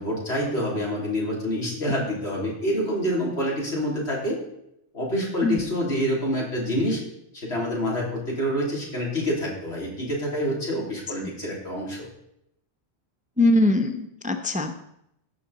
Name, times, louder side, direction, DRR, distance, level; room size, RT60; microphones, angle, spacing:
voice 1, 0.0-4.4 4.9-7.0 7.3-12.1, equal, 85° left, -4 dB, 3.6 m, -27 dB
voice 2, 13.4-14.7, left 1 dB, 10° right, 7 dB, 0.5 m, -21 dB
16.5 x 5.8 x 4.1 m, 0.76 s
omnidirectional pair, 1.1 m